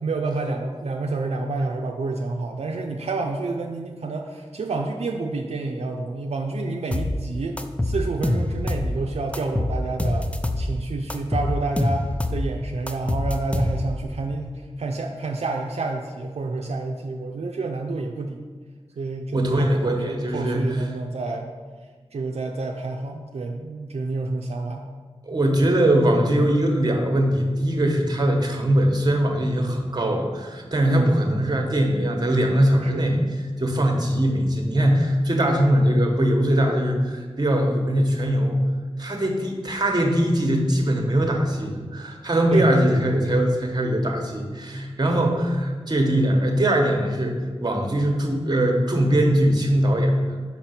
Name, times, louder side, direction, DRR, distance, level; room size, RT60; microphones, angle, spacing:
voice 1, 0.0-7.6 7.8-10.2 10.6-18.5 19.0-21.5 22.1-24.8 30.8-31.2 32.8-33.2 42.5-42.6 45.2-45.3, right 3 dB, 80° right, 2 dB, 0.5 m, -29 dB
sound 1, 6.9-7.2 7.6-8.9 9.3-10.7 11.1-12.5 12.9-14.0, left 1 dB, 10° left, 0.5 m, -25 dB
voice 2, 19.3-20.9 25.3-33.2 33.6-38.6 39.0-50.4, right 1 dB, 40° right, 3 dB, 1.1 m, -21 dB
5.7 x 4.3 x 5.8 m, 1.5 s
wide cardioid pair, 60°, 11 cm